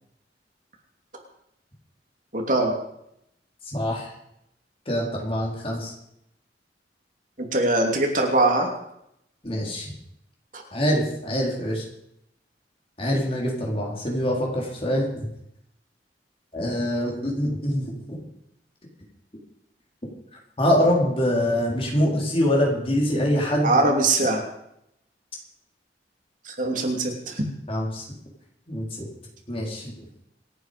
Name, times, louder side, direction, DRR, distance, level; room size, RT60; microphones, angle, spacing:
voice 1, 2.3-2.8 7.5-8.7 10.5-10.6 23.6-24.4 26.4-27.4, right 2 dB, 45° right, 2 dB, 3.0 m, -22 dB
voice 2, 3.7-4.1 4.9-5.9 9.4-9.9 10.7-11.8 13.0-15.1 16.5-18.2 20.6-23.8 27.7-28.1 28.7-29.1 29.5-29.9, equal, 30° left, -1 dB, 4.2 m, -24 dB
27.0 x 9.3 x 5.3 m, 0.78 s
head